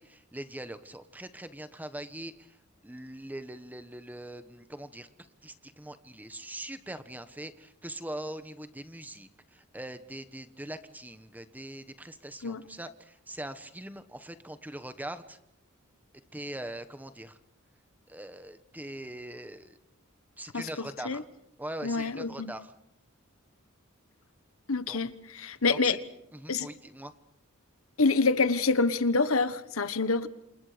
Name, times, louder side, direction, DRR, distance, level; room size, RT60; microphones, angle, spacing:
voice 1, 0.0-2.6 2.8-5.1 5.4-15.4 16.3-17.4 18.1-19.8 20.4-21.2 21.6-22.7 24.9-25.0 25.4-25.8 26.3-27.1, right 1 dB, 10° right, 1.3 m, -42 dB
voice 2, 20.5-21.2 21.8-22.5 24.7-26.0 26.5-26.7 28.0-30.3, left 4 dB, 75° left, 1.4 m, -27 dB
29.0 x 27.5 x 5.1 m
head